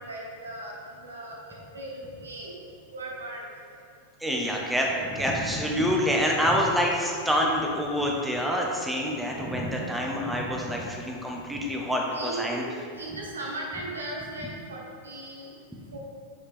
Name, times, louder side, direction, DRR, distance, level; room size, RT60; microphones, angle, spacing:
voice 1, 0.0-1.3 1.7-2.6 2.9-3.4 6.3-6.4 12.1-15.5 15.9-16.0, right 2 dB, 75° right, -2 dB, 1.0 m, -37 dB
voice 2, 4.2-12.6, equal, 5° right, -1 dB, 1.1 m, -27 dB
8.6 x 4.9 x 3.6 m, 2.3 s
figure-of-eight pair, 90°, 0 cm